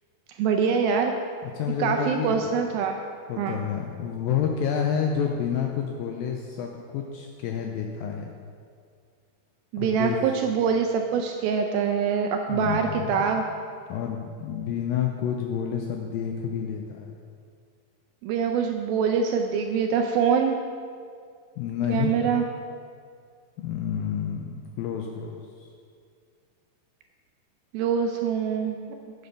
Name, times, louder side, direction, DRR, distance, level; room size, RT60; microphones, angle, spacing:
voice 1, 0.4-1.1 1.8-3.0 3.4-3.6 9.7-13.4 18.2-20.6 21.9-22.5 27.7-28.8, right 6 dB, 80° right, 4 dB, 2.2 m, -24 dB
voice 2, 1.4-2.6 3.3-8.3 9.8-10.2 12.5-13.3 13.9-17.1 21.6-22.2 23.6-25.7, left 8 dB, 85° left, 2 dB, 2.1 m, -29 dB
8.7 x 8.0 x 5.7 m, 2.2 s
omnidirectional pair, 4.7 m